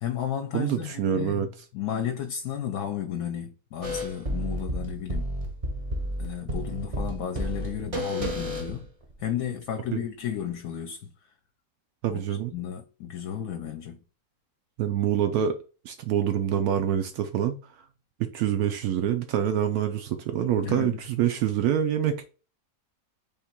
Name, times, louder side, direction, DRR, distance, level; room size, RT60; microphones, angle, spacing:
voice 1, 0.0-1.5 1.7-5.3 6.2-8.9 9.2-11.1 12.1-14.0 20.6-21.0, left 9 dB, 70° left, 1.0 m, -33 dB
voice 2, 0.5-1.5 9.9-10.0 12.0-12.5 14.8-15.5 15.8-17.6 18.3-22.2, right 9 dB, 75° right, 1.0 m, -26 dB
sound 1, 3.8-9.3, equal, 30° right, 0.6 m, -31 dB
3.6 x 3.0 x 4.3 m
omnidirectional pair, 1.6 m